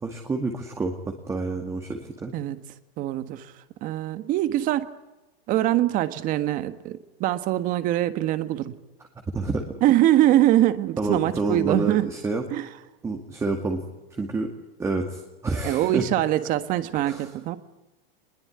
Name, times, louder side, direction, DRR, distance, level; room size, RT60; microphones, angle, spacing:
voice 1, 0.0-2.3 9.3-9.7 11.0-12.4 13.0-13.8 14.2-14.5 14.8-16.0 17.0-17.3, right 3 dB, 10° right, 3 dB, 2.2 m, -28 dB
voice 2, 3.0-3.5 3.8-4.8 5.5-8.7 9.8-12.1 12.5-12.7 15.6-17.6, right 14 dB, 30° right, 11 dB, 1.5 m, -23 dB
25.5 x 21.5 x 9.8 m, 1.0 s
supercardioid pair, 155°, 29 cm